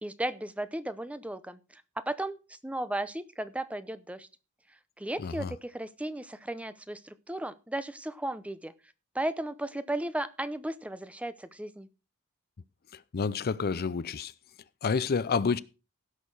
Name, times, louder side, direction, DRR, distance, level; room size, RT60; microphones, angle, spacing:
voice 1, 0.0-4.3 5.0-8.7 9.1-11.9, right 1 dB, 5° right, 0.6 m, -35 dB
voice 2, 5.2-5.5 12.9-14.3 14.8-15.6, left 5 dB, 45° left, 0.5 m, -29 dB
16.5 x 6.5 x 4.7 m
head